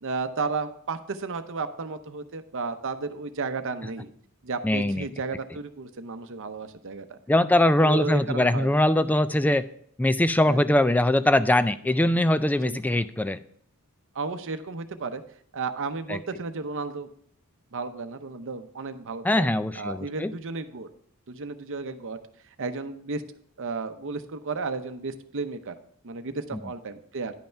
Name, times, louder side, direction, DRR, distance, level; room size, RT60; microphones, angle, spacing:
voice 1, 0.0-4.1 4.4-7.2 7.8-8.8 10.5-10.6 12.6-12.8 14.1-15.2 15.5-17.1 17.7-19.5 19.8-20.9 21.3-22.2 22.6-23.2 23.6-25.7 26.0-27.3, right 4 dB, 60° right, 9 dB, 0.7 m, -33 dB
voice 2, 4.6-5.1 7.3-9.6 10.0-13.4 16.1-16.2 19.2-20.3, left 1 dB, 5° left, 13 dB, 0.3 m, -22 dB
10.5 x 5.5 x 4.5 m, 0.66 s
head